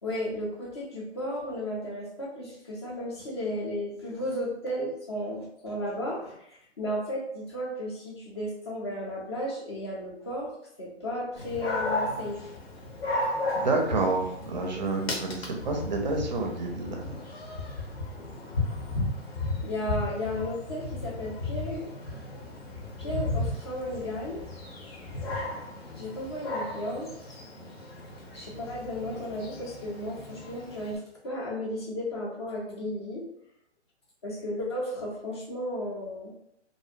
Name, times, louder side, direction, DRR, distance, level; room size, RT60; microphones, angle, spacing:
voice 1, 0.0-10.5 10.8-12.4 19.6-21.9 23.0-24.4 25.9-27.1 28.3-33.3 34.2-36.3, left 1 dB, 25° left, -3 dB, 0.4 m, -34 dB
Dog, 11.4-31.0, left 2 dB, 60° left, 0.7 m, -35 dB
voice 2, 13.6-17.1, right 3 dB, 40° right, 2 dB, 0.5 m, -29 dB
2.5 x 2.0 x 2.5 m, 0.77 s
figure-of-eight pair, 135°, 35 cm